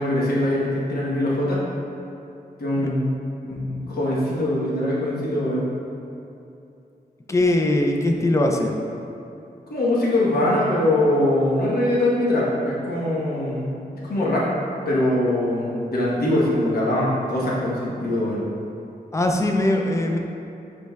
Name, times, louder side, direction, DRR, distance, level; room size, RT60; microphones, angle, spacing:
voice 1, 0.0-1.6 2.6-3.1 3.5-5.7 9.7-13.8 14.0-14.5 14.8-18.4, left 1 dB, 75° left, -6 dB, 1.0 m, -22 dB
voice 2, 7.3-8.7 19.1-20.2, left 1 dB, 20° left, 2 dB, 0.3 m, -21 dB
5.1 x 4.4 x 2.3 m, 2.7 s
wide cardioid pair, 175°, 16 cm